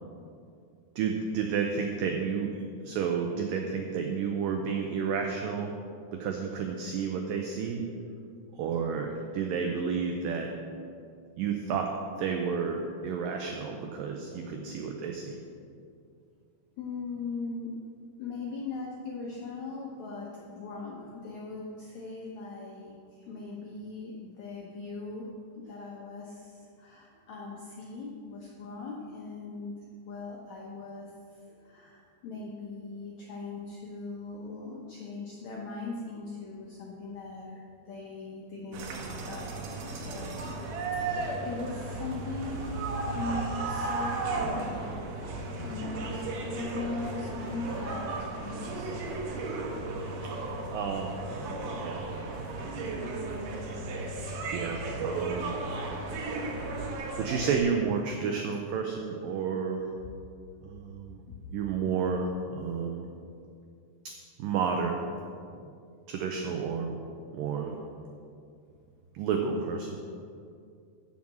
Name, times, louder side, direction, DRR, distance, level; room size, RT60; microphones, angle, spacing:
voice 1, 1.0-5.7 6.1-7.8 8.5-10.5 11.4-15.4 50.2-50.4 50.7-51.2 51.6-52.1 53.5-53.8 54.5-55.5 57.2-59.9 60.6-61.2 61.5-63.1 64.4-65.0 65.6-65.7 66.1-67.0 67.3-67.8 69.1-70.0, right 6 dB, 85° right, 3 dB, 1.9 m, -31 dB
voice 2, 16.8-17.8 18.2-25.3 25.6-29.7 30.1-40.4 40.9-42.8 43.1-45.0 45.6-49.0 61.3-61.5, left 3 dB, 80° left, -3 dB, 1.6 m, -40 dB
sound 1, 38.7-57.6, right 3 dB, 70° right, 2.2 m, -35 dB
7.6 x 7.3 x 7.5 m, 2.4 s
omnidirectional pair, 4.8 m